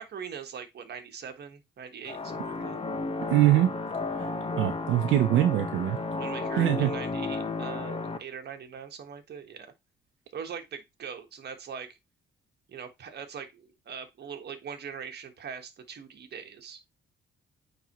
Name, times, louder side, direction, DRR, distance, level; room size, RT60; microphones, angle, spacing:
voice 1, 0.0-2.8 6.1-9.7 10.3-12.0 12.7-16.8, right 7 dB, 55° right, 1.4 m, -41 dB
sound 1, 2.1-8.2, left 3 dB, 30° left, 1.2 m, -33 dB
voice 2, 3.3-3.7 4.6-6.0 6.6-6.9, right 14 dB, 80° right, 0.7 m, -23 dB
8.9 x 3.5 x 3.0 m
cardioid pair, 90°, 20 cm